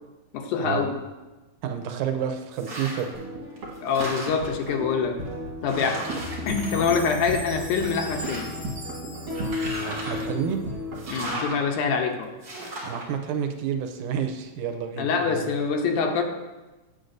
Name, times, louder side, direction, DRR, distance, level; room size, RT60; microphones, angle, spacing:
voice 1, 0.3-1.0 3.8-5.2 5.6-6.0 6.5-8.5 11.1-12.3 15.0-16.2, left 5 dB, 80° left, 4 dB, 2.1 m, -25 dB
voice 2, 1.6-3.2 5.8-6.0 6.7-6.9 9.8-10.6 12.8-15.5, right 7 dB, 85° right, 6 dB, 2.1 m, -30 dB
sound 1, 2.5-3.2 3.6-4.6 5.3-5.4 5.7-7.4 7.8-8.7 9.3-10.3 10.9-11.6 12.4-13.0, right 1 dB, 40° right, 2.1 m, -36 dB
sound 2, 3.1-11.4, left 1 dB, 65° right, 2.5 m, -34 dB
Chime, 6.5-10.7, left 1 dB, 15° left, 2.2 m, -42 dB
8.3 x 7.8 x 2.6 m, 1.1 s
omnidirectional pair, 3.6 m